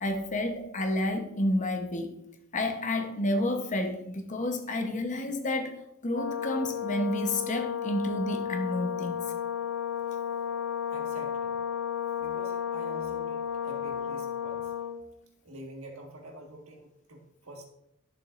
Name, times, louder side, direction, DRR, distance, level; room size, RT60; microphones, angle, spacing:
voice 1, 0.0-2.2 2.5-5.7 6.0-9.3, left 1 dB, 35° left, 0.9 m, -30 dB
Brass instrument, 6.1-15.0, left 8 dB, 80° left, 0.8 m, -33 dB
voice 2, 10.9-11.6 12.2-14.7 15.4-17.6, right 1 dB, 85° right, 1.7 m, -46 dB
12.0 x 7.1 x 2.6 m
head